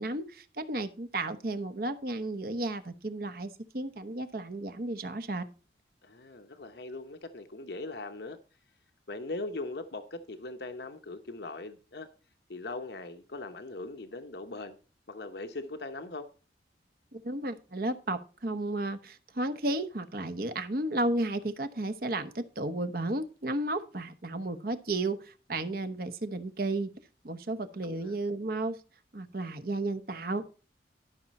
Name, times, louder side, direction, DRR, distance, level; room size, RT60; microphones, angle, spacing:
voice 1, 0.0-5.4 17.1-26.9 27.2-28.8 29.1-30.5, right 2 dB, 55° right, 1.0 m, -33 dB
voice 2, 6.0-8.4 9.1-12.1 12.5-14.8 15.1-16.3 27.8-28.2, left 2 dB, 65° left, 0.9 m, -40 dB
12.5 x 5.9 x 4.2 m
head